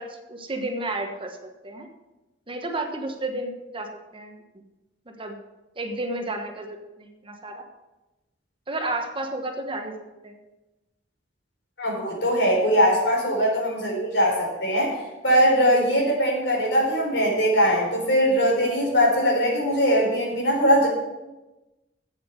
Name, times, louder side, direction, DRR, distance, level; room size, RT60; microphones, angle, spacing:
voice 1, 0.0-1.4 1.6-1.9 2.5-4.3 5.2-5.4 5.8-7.6 8.7-10.0 10.2-10.4, right 2 dB, 30° right, 4 dB, 1.2 m, -32 dB
voice 2, 11.8-15.0 15.2-20.9, equal, 80° left, -2 dB, 4.4 m, -21 dB
8.2 x 7.6 x 8.0 m, 1.1 s
head